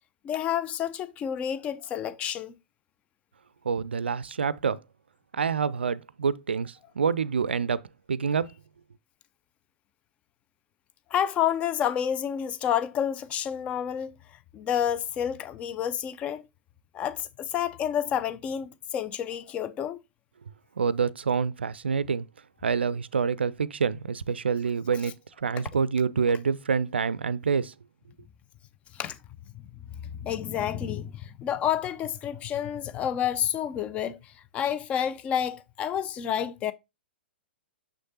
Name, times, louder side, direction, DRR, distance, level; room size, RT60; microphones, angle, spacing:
voice 1, 0.2-2.5 11.1-14.1 14.5-16.4 16.9-20.0 29.0-29.2 30.2-31.1 31.4-34.2 34.5-36.7, left 9 dB, 20° left, 0.5 m, -29 dB
voice 2, 3.6-4.8 5.3-7.8 8.1-8.5 20.8-22.2 22.6-25.1 25.4-27.7, right 6 dB, 70° right, 0.4 m, -27 dB
6.4 x 6.4 x 2.7 m
figure-of-eight pair, 110°, 6 cm